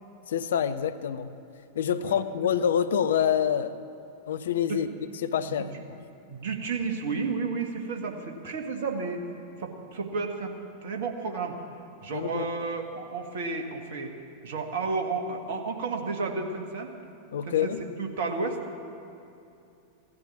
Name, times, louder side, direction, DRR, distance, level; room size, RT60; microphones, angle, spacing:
voice 1, 0.3-1.3 1.7-3.8 4.3-4.9 5.2-5.7 12.1-12.5 17.3-17.8, left 8 dB, 60° left, 12 dB, 0.6 m, -26 dB
voice 2, 6.3-9.2 9.6-10.5 10.8-11.6 12.0-14.1 14.4-16.9 17.4-17.7 18.0-18.6, right 4 dB, 55° right, 4 dB, 1.7 m, -32 dB
16.0 x 12.0 x 7.2 m, 2.7 s
figure-of-eight pair, 90°, 0 cm